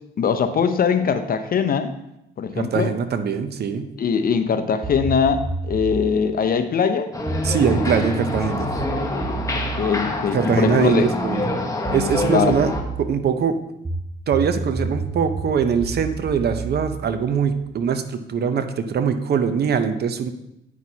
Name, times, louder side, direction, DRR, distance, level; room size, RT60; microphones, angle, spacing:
voice 1, 0.2-1.9 2.4-2.9 4.0-7.1 9.8-11.1 12.3-12.6, left 6 dB, 45° left, 9 dB, 0.7 m, -21 dB
voice 2, 2.6-3.9 7.4-8.7 10.3-11.5 11.9-12.7 13.0-13.6 14.3-20.3, right 6 dB, 55° right, 9 dB, 0.7 m, -22 dB
sound 1, 4.8-6.1 7.3-11.0 11.8-13.1 13.8-17.8, right 3 dB, 10° right, 0.7 m, -30 dB
sound 2, 7.1-12.8, left 2 dB, 15° left, 1.0 m, -26 dB
9.2 x 6.1 x 2.8 m, 0.84 s
cardioid pair, 90°, 20 cm